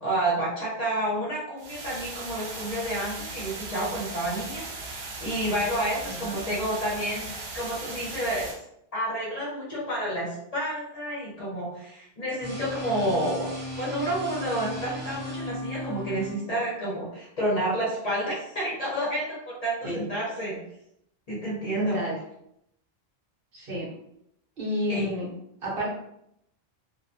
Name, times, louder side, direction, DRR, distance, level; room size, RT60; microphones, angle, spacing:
voice 1, 0.0-7.3 7.5-8.5 8.9-20.6 21.3-22.0 24.9-25.1, right 1 dB, 40° left, -6 dB, 0.8 m, -30 dB
sound 1, 1.6-8.5, right 3 dB, 90° right, 0.8 m, -38 dB
voice 2, 6.0-6.4 19.8-20.1 21.8-22.2 23.5-23.9 24.6-25.3 25.6-25.9, equal, 65° right, -4 dB, 0.9 m, -31 dB
sound 2, 12.4-16.4, left 1 dB, 15° right, 0.4 m, -36 dB
2.3 x 2.1 x 2.5 m, 0.76 s
omnidirectional pair, 1.0 m